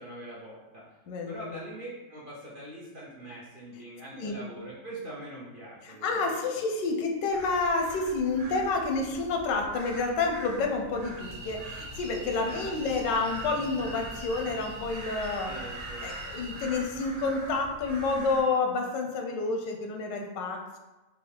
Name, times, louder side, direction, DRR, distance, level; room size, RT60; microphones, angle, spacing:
voice 1, 0.0-1.0 1.3-6.4 12.4-13.0 15.4-16.1, right 1 dB, 60° right, -6 dB, 0.5 m, -43 dB
voice 2, 1.1-1.4 4.1-4.4 5.8-15.5 16.0-20.8, left 3 dB, 90° left, 3 dB, 1.3 m, -29 dB
sound 1, 7.3-18.4, right 1 dB, 25° right, 0.8 m, -44 dB
sound 2, 11.2-16.6, right 2 dB, 85° right, 1.8 m, -43 dB
5.5 x 2.3 x 3.3 m, 1.1 s
omnidirectional pair, 1.8 m